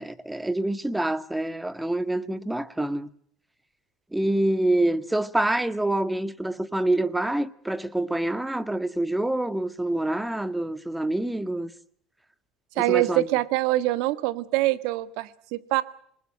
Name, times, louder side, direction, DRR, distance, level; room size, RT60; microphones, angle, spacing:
voice 1, 0.0-3.1 4.1-11.7 12.8-13.3, right 1 dB, 10° right, 1.7 m, -26 dB
voice 2, 12.8-15.8, right 17 dB, 70° right, 1.6 m, -24 dB
27.5 x 20.5 x 7.5 m
hypercardioid pair, 75°, 0 cm